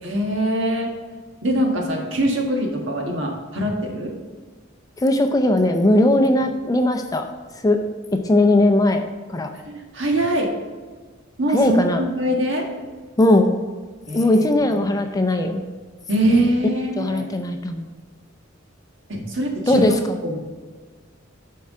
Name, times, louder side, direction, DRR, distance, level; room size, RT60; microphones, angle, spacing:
voice 1, 0.0-0.9 1.4-4.1 9.7-10.5 11.4-12.7 14.1-14.9 16.1-17.3 19.1-19.9 20.2-20.4, right 1 dB, 65° right, 0 dB, 1.6 m, -23 dB
voice 2, 5.0-7.2 7.6-7.8 8.2-9.0 9.3-9.5 11.5-12.0 13.2-13.5 14.1-15.6 17.0-17.9 19.7-20.2, left 1 dB, 20° left, 6 dB, 0.5 m, -18 dB
11.5 x 4.7 x 3.7 m, 1.4 s
head